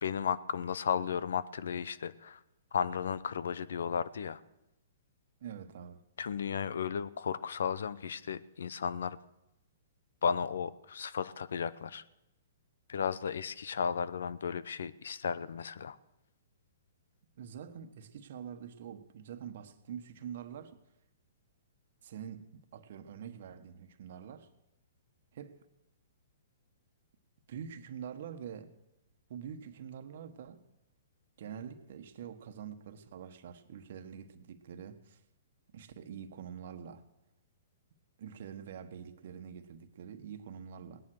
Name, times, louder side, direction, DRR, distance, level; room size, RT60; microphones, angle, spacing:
voice 1, 0.0-2.4 2.7-4.4 6.2-9.2 10.2-12.0 12.9-16.0, left 7 dB, 75° left, 17 dB, 0.7 m, -34 dB
voice 2, 5.4-6.0 17.4-20.8 22.0-24.5 25.3-25.6 27.5-28.7 29.3-30.6 31.4-35.2 35.7-37.0 38.2-41.0, right 8 dB, 60° right, 9 dB, 1.3 m, -45 dB
18.0 x 10.5 x 6.4 m, 0.92 s
hypercardioid pair, 135°, 0 cm